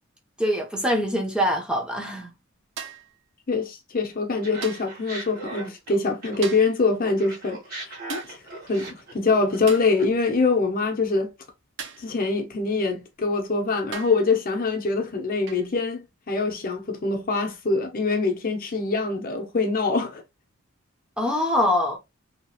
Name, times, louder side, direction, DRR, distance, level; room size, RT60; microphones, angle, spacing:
voice 1, 0.4-2.3 21.2-22.0, equal, 5° right, 0.6 m, -24 dB
sound 1, 2.8-3.2 4.6-5.0 6.4-6.8 8.1-8.4 9.7-10.0 11.8-12.1 13.2-13.3 13.9-14.3 15.5-15.7 17.3-17.5, right 6 dB, 65° right, 0.6 m, -38 dB
voice 2, 3.5-8.4 8.7-11.3 12.0-20.2, left 3 dB, 45° left, 0.7 m, -24 dB
Laughter, 4.4-6.7 7.0-10.2, right 2 dB, 50° right, 1.4 m, -39 dB
2.8 x 2.8 x 2.4 m
head